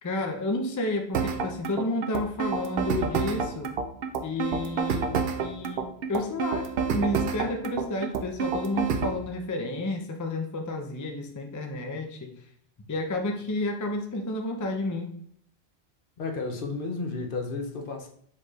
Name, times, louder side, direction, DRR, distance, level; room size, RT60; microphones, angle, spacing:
voice 1, 0.0-3.7 4.2-5.1 5.4-12.3 12.9-15.1, left 2 dB, 25° left, 3 dB, 0.4 m, -31 dB
sound 1, 1.1-9.2, right 5 dB, 65° right, 0.8 m, -28 dB
voice 2, 16.2-18.1, left 3 dB, 60° left, 3 dB, 0.8 m, -32 dB
4.7 x 4.6 x 2.4 m, 0.67 s
omnidirectional pair, 1.1 m